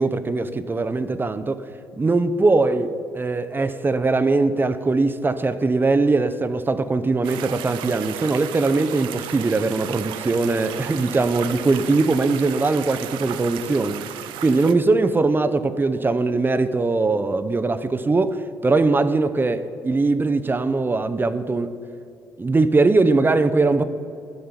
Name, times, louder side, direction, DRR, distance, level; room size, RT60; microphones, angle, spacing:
voice 1, 0.0-1.6 2.0-21.7 22.4-23.8, right 3 dB, 25° right, 11 dB, 0.7 m, -21 dB
sound 1, 7.2-14.7, right 11 dB, 70° right, 0.6 m, -34 dB
10.5 x 5.5 x 8.2 m, 2.5 s
hypercardioid pair, 55°, 9 cm